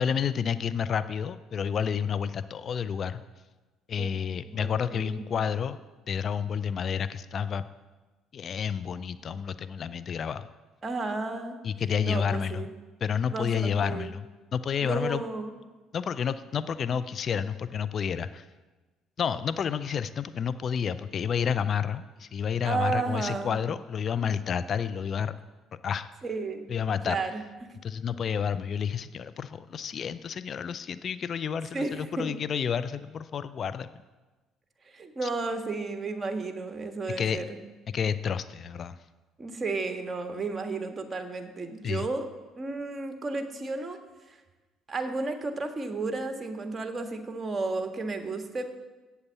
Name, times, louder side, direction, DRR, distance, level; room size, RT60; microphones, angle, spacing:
voice 1, 0.0-3.2 3.9-5.8 6.1-7.6 8.3-10.5 11.6-12.6 13.0-14.3 14.5-15.2 15.9-18.4 19.2-25.3 25.8-26.1 26.7-27.2 27.8-33.9 35.2-35.3 37.2-37.4 37.9-39.0 41.8-42.1, left 7 dB, 50° left, 13 dB, 0.5 m, -30 dB
voice 2, 4.5-5.2 10.8-11.6 12.0-12.7 13.3-14.1 14.8-15.6 22.6-23.6 26.2-26.7 27.0-27.4 31.7-32.3 34.9-37.6 39.4-42.3 42.6-44.0 44.3-44.4 44.9-48.7, right 3 dB, 30° right, 6 dB, 1.6 m, -33 dB
8.1 x 8.0 x 8.3 m, 1.2 s
hypercardioid pair, 60°, 0 cm